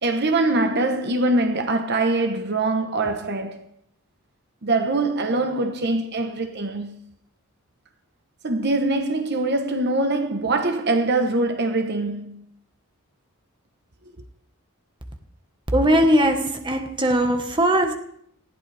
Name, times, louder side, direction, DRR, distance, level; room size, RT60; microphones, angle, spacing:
voice 1, 0.0-3.6 4.6-6.9 8.4-12.4, right 2 dB, 50° right, 1.0 m, -23 dB
voice 2, 15.7-17.9, equal, 20° right, 1.3 m, -19 dB
19.5 x 14.5 x 3.4 m
head